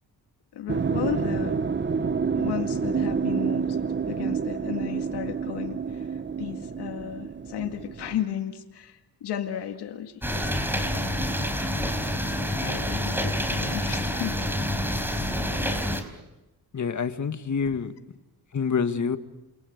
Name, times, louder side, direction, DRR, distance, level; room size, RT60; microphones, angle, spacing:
voice 1, 0.5-1.6 2.3-3.8 4.1-10.2 12.6-14.4, left 10 dB, 90° left, 5 dB, 2.1 m, -34 dB
sound 1, 0.7-8.2, right 6 dB, 30° right, 1.1 m, -28 dB
sound 2, 10.2-16.0, equal, 5° right, 4.6 m, -27 dB
voice 2, 16.7-17.9 18.5-19.2, left 6 dB, 45° left, 9 dB, 1.9 m, -27 dB
28.5 x 23.0 x 8.1 m, 1.0 s
cardioid pair, 75°, 39 cm